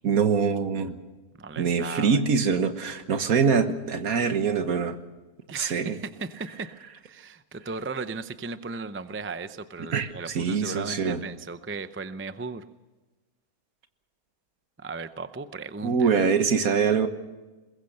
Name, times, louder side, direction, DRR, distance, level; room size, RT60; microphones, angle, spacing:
voice 1, 0.0-0.9 1.6-5.0 5.6-6.0 9.9-11.2 15.8-17.1, right 6 dB, 65° right, 9 dB, 1.7 m, -24 dB
voice 2, 1.4-2.2 5.5-6.7 7.0-12.7 14.8-16.3, right 4 dB, 20° right, 11 dB, 0.3 m, -36 dB
22.0 x 21.5 x 6.7 m, 1.2 s
omnidirectional pair, 1.6 m